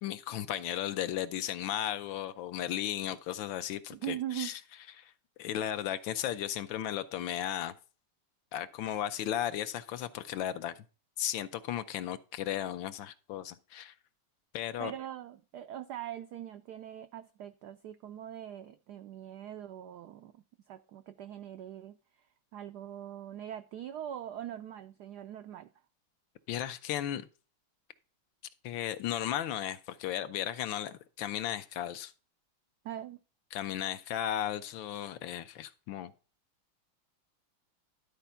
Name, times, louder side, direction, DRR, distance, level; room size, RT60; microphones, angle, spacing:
voice 1, 0.0-4.6 5.0-5.1 5.4-7.7 8.5-10.8 11.2-13.9 14.5-14.9 26.5-27.3 28.6-32.1 33.5-36.1, left 11 dB, 75° left, 1.3 m, -35 dB
voice 2, 3.9-4.5 14.8-22.0 22.5-25.7 32.8-33.2, right 11 dB, 80° right, 0.9 m, -42 dB
11.5 x 4.3 x 5.5 m
omnidirectional pair, 2.3 m